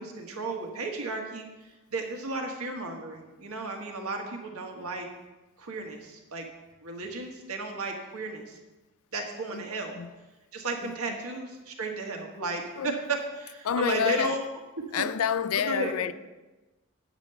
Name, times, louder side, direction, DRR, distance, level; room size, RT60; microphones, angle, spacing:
voice 1, 0.0-5.1 5.6-6.5 6.8-8.6 9.1-9.9 10.5-14.4 15.7-16.1, right 2 dB, 90° right, 1.6 m, -34 dB
voice 2, 10.8-11.3 12.7-13.1 13.6-14.5 14.9-16.1, left 8 dB, 80° left, 0.4 m, -29 dB
9.1 x 5.3 x 6.7 m
head